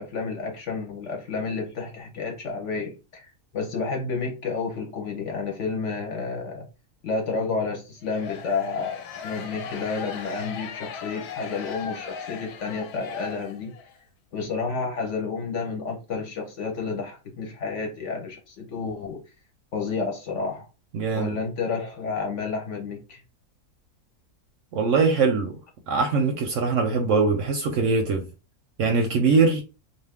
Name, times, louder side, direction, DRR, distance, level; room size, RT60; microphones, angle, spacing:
voice 1, 0.0-6.7 7.0-13.7 14.3-19.2 19.7-20.6 21.1-23.2, left 4 dB, 60° left, 0.9 m, -30 dB
sound 1, 8.0-13.9, left 6 dB, 85° left, 1.1 m, -38 dB
voice 2, 20.9-21.4 24.7-25.6 25.9-28.3 28.8-29.6, right 4 dB, 70° right, 0.8 m, -22 dB
2.5 x 2.5 x 3.5 m
omnidirectional pair, 1.6 m